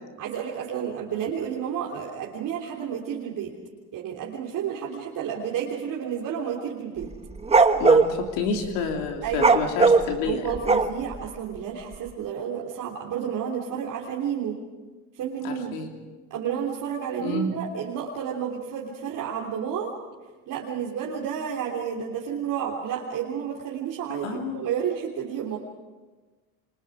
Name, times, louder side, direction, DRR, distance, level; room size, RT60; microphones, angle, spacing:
voice 1, 0.2-3.5 3.9-7.1 9.2-9.6 10.2-14.6 15.1-15.8 16.3-19.9 20.5-25.6, right 8 dB, 50° right, -3 dB, 3.5 m, -31 dB
sound 1, 7.0-8.1 9.3-11.2, right 4 dB, 15° right, 1.1 m, -18 dB
voice 2, 7.8-10.4 15.4-15.9 17.2-17.5 24.2-24.6, left 5 dB, 80° left, 3 dB, 3.0 m, -29 dB
29.5 x 24.5 x 5.0 m, 1.3 s
supercardioid pair, 110°, 41 cm